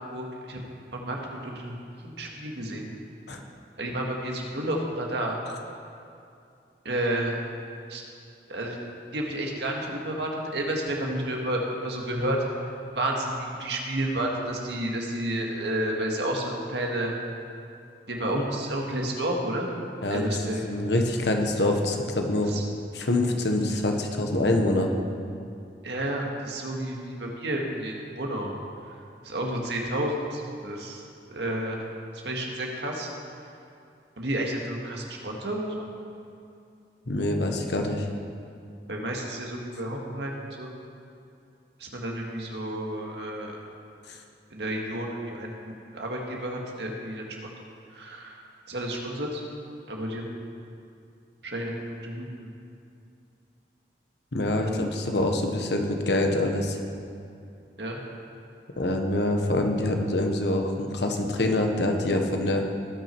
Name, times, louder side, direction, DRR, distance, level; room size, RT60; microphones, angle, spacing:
voice 1, 0.1-0.6 0.9-1.2 1.4-1.8 2.0-2.8 3.8-5.4 6.9-7.3 7.9-8.0 8.5-8.8 9.1-12.4 12.9-17.1 18.1-19.7 20.1-20.6 22.5-22.6 25.8-28.5 29.2-31.0 31.3-31.8 32.2-33.1 34.2-35.8 38.9-40.7 41.8-43.6 44.5-47.5 47.9-48.4 48.7-49.4 49.9-50.3 51.4-52.5 54.6-54.8 57.8-58.0, right 1 dB, 80° right, 0 dB, 1.8 m, -31 dB
voice 2, 20.6-22.5 22.9-24.9 37.1-38.1 44.1-44.2 54.3-56.8 58.8-62.6, left 1 dB, 80° left, 3 dB, 1.2 m, -25 dB
18.5 x 6.3 x 4.5 m, 2.6 s
head